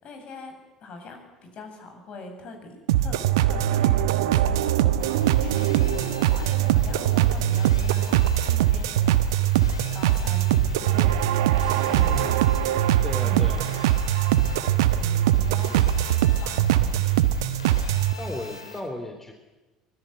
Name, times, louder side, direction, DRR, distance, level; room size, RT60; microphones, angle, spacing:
voice 1, 0.0-9.4 9.9-12.4 13.2-13.7 14.9-16.0 16.3-17.5 18.6-18.8, left 2 dB, 45° left, 5 dB, 7.8 m, -43 dB
sound 1, 2.9-18.1, right 12 dB, 65° right, 1.3 m, -22 dB
sound 2, 5.0-18.8, left 4 dB, 80° left, 3.3 m, -43 dB
voice 2, 12.0-12.5 13.0-13.6 18.2-19.3, left 1 dB, 10° left, 4 dB, 3.7 m, -35 dB
24.5 x 20.0 x 9.8 m, 1.1 s
figure-of-eight pair, 65°, 3 cm